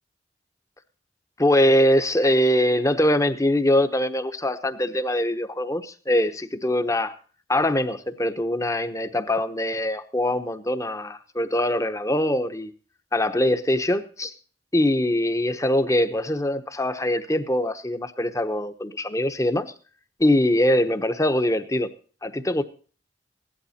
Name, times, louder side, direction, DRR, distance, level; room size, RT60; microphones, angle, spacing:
voice 1, 1.4-7.1 7.5-12.7 13.1-14.3 14.7-19.7 20.2-21.9 22.2-22.6, left 1 dB, 20° left, 10 dB, 1.0 m, -23 dB
16.5 x 11.5 x 4.2 m, 0.40 s
head